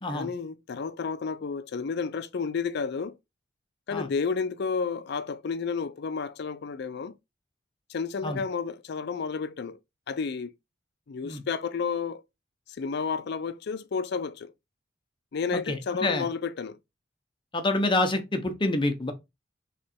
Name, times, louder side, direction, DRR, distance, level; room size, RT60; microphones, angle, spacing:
voice 1, 0.1-3.2 3.9-7.1 7.9-9.8 10.1-10.5 11.1-12.2 12.7-14.5 15.3-16.8, left 5 dB, 60° left, 0.4 m, -31 dB
voice 2, 15.5-16.3 17.5-19.1, left 2 dB, 25° left, 0.8 m, -27 dB
3.7 x 3.3 x 4.2 m
head